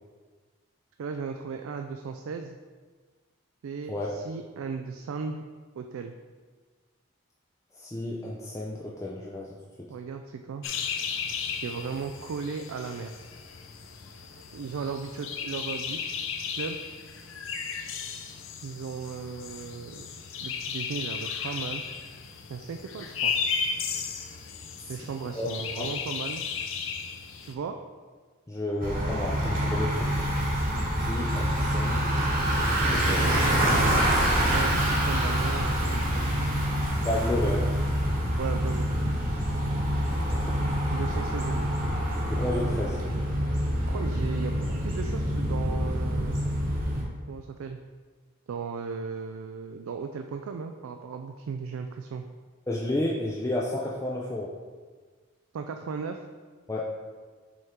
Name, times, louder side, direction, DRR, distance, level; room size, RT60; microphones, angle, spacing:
voice 1, 1.0-2.6 3.6-5.4 5.8-6.1 9.9-10.6 11.6-13.1 14.5-16.3 16.6-16.8 18.6-20.1 20.4-21.8 22.5-23.3 24.9-26.5 27.4-27.8 33.1-33.4 34.5-36.7 38.4-38.9 40.9-41.7 43.9-46.4 47.3-47.8 48.5-52.2 55.5-56.2, right 5 dB, 85° right, 5 dB, 0.3 m, -36 dB
voice 2, 3.9-4.2 7.8-9.5 24.9-25.0 25.4-25.5 25.8-25.9 28.5-30.1 31.0-32.1 32.9-33.3 37.0-37.7 40.2-40.9 42.3-43.0 52.7-54.5 56.7-56.9, left 1 dB, 15° left, -4 dB, 0.4 m, -31 dB
sound 1, 10.6-27.5, left 6 dB, 70° left, 0.5 m, -35 dB
Bicycle, 28.8-47.0, equal, 40° right, 1.2 m, -26 dB
6.2 x 3.6 x 4.3 m, 1.5 s
head